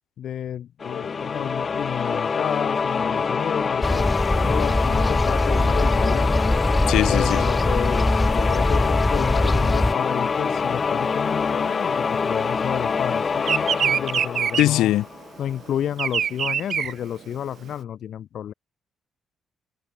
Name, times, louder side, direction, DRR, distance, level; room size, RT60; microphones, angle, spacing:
voice 1, 0.2-4.1 4.3-6.4 7.1-14.9 15.4-18.5, left 10 dB, 65° left, 3.8 m, -30 dB
sound 1, 0.8-15.4, left 5 dB, 40° left, 5.1 m, -25 dB
sound 2, 3.8-9.9, left 1 dB, 10° left, 3.8 m, -22 dB
voice 2, 6.9-7.4 14.6-15.1, left 14 dB, 85° left, 5.7 m, -20 dB
Bird vocalization bird call bird song, 9.8-12.7 13.0-17.7, right 8 dB, 55° right, 5.9 m, -26 dB
cardioid pair, 90°, 0 cm